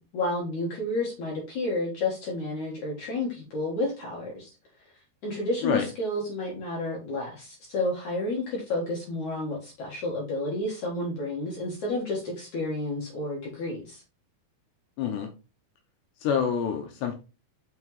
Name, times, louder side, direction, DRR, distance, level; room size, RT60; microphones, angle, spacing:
voice 1, 0.0-4.5 5.2-14.0, left 2 dB, 60° left, -3 dB, 2.1 m, -31 dB
voice 2, 15.0-15.3 16.2-17.2, left 7 dB, 75° left, 4 dB, 2.7 m, -27 dB
6.5 x 5.8 x 3.1 m, 0.31 s
omnidirectional pair, 5.7 m